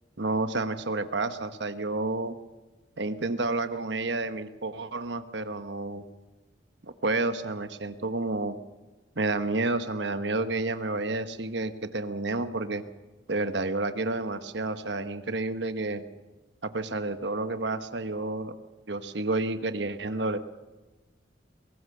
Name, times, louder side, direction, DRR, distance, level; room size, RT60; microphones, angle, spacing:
voice 1, 0.2-2.4 3.0-6.0 6.8-8.6 9.2-12.8 13.3-16.0 16.6-18.5 18.9-20.4, right 2 dB, 70° right, 10 dB, 1.1 m, -30 dB
21.5 x 18.5 x 6.7 m, 1.2 s
head